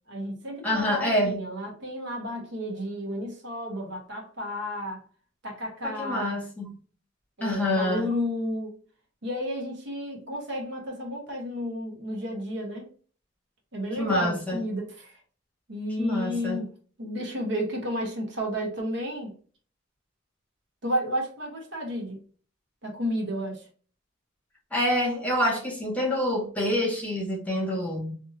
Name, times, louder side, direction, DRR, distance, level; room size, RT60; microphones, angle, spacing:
voice 1, 0.1-5.0 5.4-6.4 7.4-8.7 9.2-12.9 13.7-15.2 15.7-16.7 17.0-19.3 20.8-22.2 22.8-23.7, equal, 60° right, 0 dB, 1.0 m, -32 dB
voice 2, 0.6-1.4 5.8-6.7 7.4-8.1 13.9-14.6 16.0-16.6 24.7-28.1, left 1 dB, 10° left, -3 dB, 1.0 m, -27 dB
2.7 x 2.6 x 2.6 m, 0.41 s
head